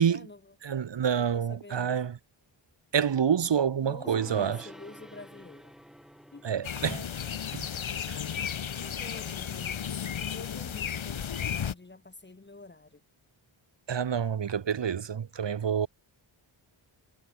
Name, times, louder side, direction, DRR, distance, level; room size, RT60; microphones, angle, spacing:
voice 1, 0.0-0.5 1.2-2.1 3.8-5.8 6.3-6.6 8.8-9.9 10.2-13.0, left 3 dB, 20° left, 6.4 m, -48 dB
voice 2, 0.6-2.2 2.9-4.7 6.4-7.1 7.5-7.7 8.1-8.2 13.9-15.9, right 7 dB, 60° right, 2.1 m, -27 dB
Gong, 4.1-11.5, equal, ahead, 6.4 m, -52 dB
sound 1, 6.6-11.7, left 8 dB, 70° left, 2.8 m, -34 dB
wide cardioid pair, 155°, 49 cm